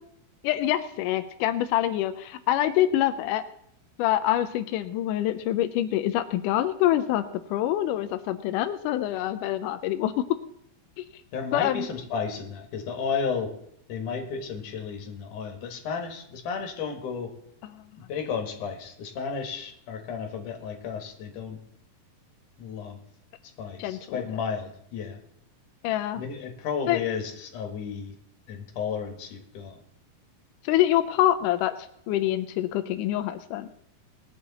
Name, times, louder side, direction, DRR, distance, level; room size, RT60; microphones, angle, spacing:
voice 1, 0.4-3.4 4.0-7.2 7.5-10.1 11.0-11.1 11.5-11.9 17.7-17.8 23.8-24.3 25.8-26.2 26.9-27.0 30.6-31.7 32.1-33.7, left 13 dB, 85° left, 9 dB, 1.8 m, -25 dB
voice 2, 11.3-13.5 13.9-17.3 18.0-21.6 22.6-23.0 23.6-25.2 26.2-28.1 28.5-29.8, left 6 dB, 60° left, 4 dB, 2.8 m, -33 dB
20.5 x 7.7 x 4.1 m, 0.73 s
omnidirectional pair, 4.4 m